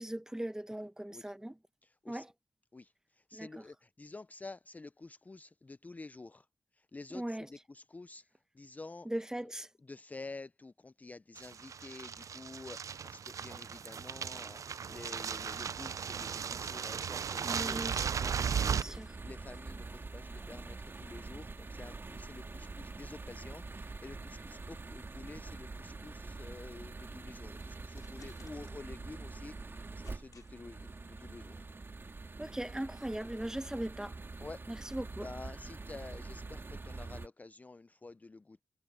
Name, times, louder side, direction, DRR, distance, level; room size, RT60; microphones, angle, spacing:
voice 1, 0.0-1.6 2.1-2.3 3.3-3.6 7.1-7.5 9.0-9.7 17.4-18.1 18.6-19.1 32.4-34.2 34.7-35.3, right 1 dB, 10° right, 1.0 m, -39 dB
voice 2, 3.3-6.4 6.9-7.4 7.7-8.2 8.6-9.1 9.9-17.8 18.2-19.0 19.2-29.5 30.0-30.8 31.1-31.6 34.4-34.6 35.2-38.6, left 3 dB, 25° left, 0.4 m, -49 dB
sound 1, 11.4-18.8, right 7 dB, 65° right, 0.4 m, -36 dB
sound 2, 18.3-31.8, left 7 dB, 85° left, 5.3 m, -69 dB
sound 3, 18.3-37.3, right 3 dB, 40° right, 1.8 m, -45 dB
cardioid pair, 70°, 6 cm